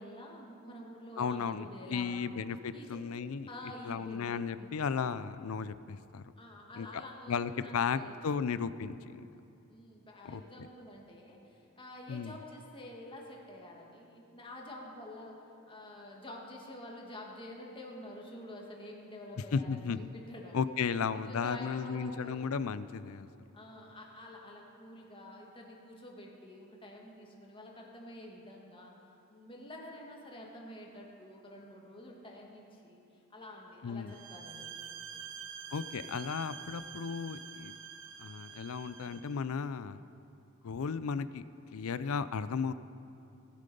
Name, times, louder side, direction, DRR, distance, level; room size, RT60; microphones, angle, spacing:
voice 1, 0.0-2.4 2.7-3.0 3.5-4.9 6.4-8.5 9.7-15.4 15.7-20.8 21.1-22.4 23.5-28.9 29.3-33.0 33.3-35.2, left 1 dB, 25° left, -1 dB, 1.7 m, -48 dB
voice 2, 1.2-3.5 3.8-6.2 6.8-7.0 7.3-9.3 10.2-10.4 12.1-12.4 19.5-20.0 20.5-23.3 33.8-34.1 35.7-37.7 38.2-40.0 40.6-41.4 41.7-42.7, left 6 dB, 70° left, 15 dB, 0.4 m, -35 dB
sound 1, 34.1-39.4, right 7 dB, 60° right, 0.6 m, -47 dB
19.0 x 7.6 x 5.4 m, 2.8 s
head